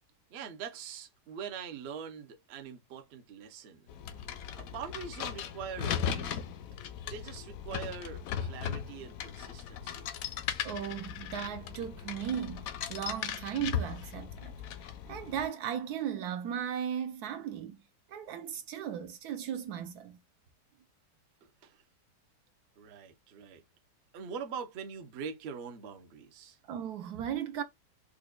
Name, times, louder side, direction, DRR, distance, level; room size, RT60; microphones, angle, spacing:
voice 1, 0.3-3.9 4.5-6.5 7.1-10.1 21.4-21.8 22.8-23.6 24.1-26.6, right 7 dB, 55° right, 0.7 m, -43 dB
sound 1, 3.9-15.5, left 8 dB, 70° left, 0.9 m, -38 dB
voice 2, 10.6-14.6 15.1-17.8 18.1-20.2 26.6-27.6, right 9 dB, 70° right, 1.0 m, -36 dB
5.0 x 2.2 x 2.2 m
omnidirectional pair, 1.8 m